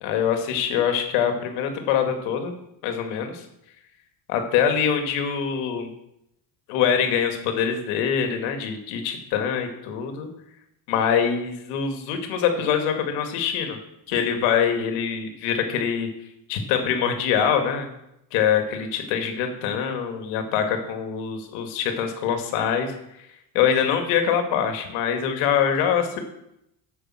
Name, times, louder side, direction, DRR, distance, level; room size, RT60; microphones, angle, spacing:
voice 1, 0.0-2.5 2.8-3.4 4.3-5.9 6.7-10.3 10.9-13.8 14.1-16.1 16.5-17.9 18.3-23.0 23.5-26.2, left 8 dB, 80° left, 6 dB, 2.3 m, -24 dB
10.0 x 7.4 x 7.7 m, 0.82 s
cardioid pair, 125°, 47 cm